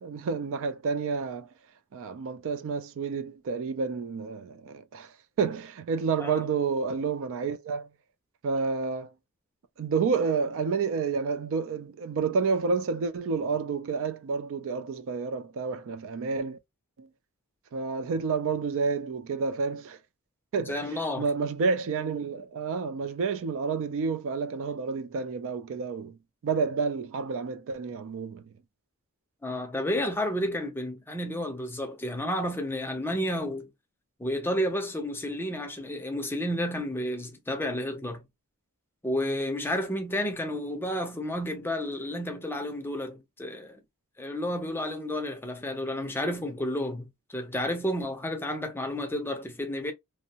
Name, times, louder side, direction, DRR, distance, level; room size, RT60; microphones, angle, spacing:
voice 1, 0.0-1.5 1.9-7.9 8.4-9.1 9.8-16.6 17.0-17.1 17.7-20.0 20.5-26.2 26.4-28.5, right 5 dB, 60° right, 0.3 m, -30 dB
voice 2, 20.7-21.2 29.4-33.7 34.2-38.2 39.0-43.8 44.2-49.9, left 1 dB, 10° left, 0.5 m, -31 dB
2.6 x 2.0 x 2.8 m
head